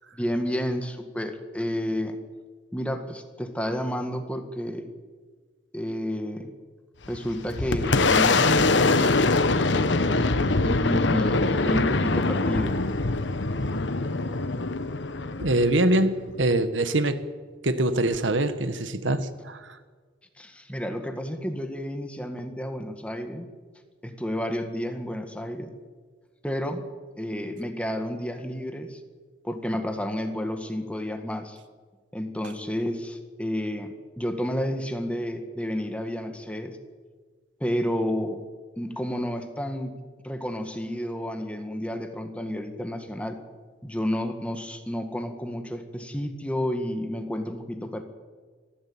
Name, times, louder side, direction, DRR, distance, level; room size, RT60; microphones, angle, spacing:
voice 1, 0.1-2.2 2.7-4.9 5.7-6.5 7.1-9.0 10.6-12.8 20.4-23.5 24.0-25.7 26.4-26.9 27.2-29.0 29.4-31.6 32.1-33.9 34.2-36.8 37.6-38.4 38.8-40.0 40.2-43.4 43.8-48.0, equal, 5° left, 6 dB, 1.8 m, -30 dB
Boom, 7.0-16.5, left 3 dB, 70° left, 1.2 m, -23 dB
voice 2, 15.4-17.2 17.6-19.8, right 1 dB, 80° right, 11 dB, 1.5 m, -24 dB
24.0 x 15.5 x 8.8 m, 1.5 s
head